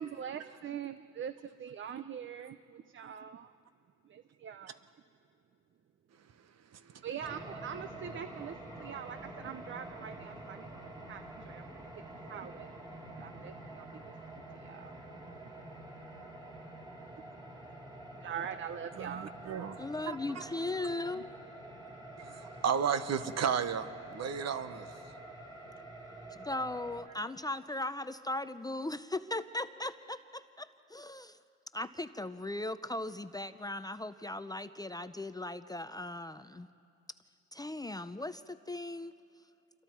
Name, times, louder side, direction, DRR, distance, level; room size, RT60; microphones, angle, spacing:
voice 1, 0.0-3.5 4.1-4.8 7.0-10.7 11.1-11.6 12.3-12.7 13.2-14.1 14.5-14.9 18.2-19.3 21.2-21.3, right 8 dB, 40° right, 11 dB, 0.6 m, -43 dB
sound 1, 7.2-27.0, right 1 dB, 15° right, 3.8 m, -47 dB
voice 2, 19.0-19.8 20.1-20.4 22.3-24.9, right 7 dB, 60° right, 11 dB, 1.1 m, -34 dB
voice 3, 19.8-21.3 26.3-31.4 31.7-36.7 37.5-39.1, left 2 dB, 15° left, 11 dB, 0.5 m, -38 dB
27.5 x 23.0 x 4.6 m, 2.5 s
cardioid pair, 90°, 30 cm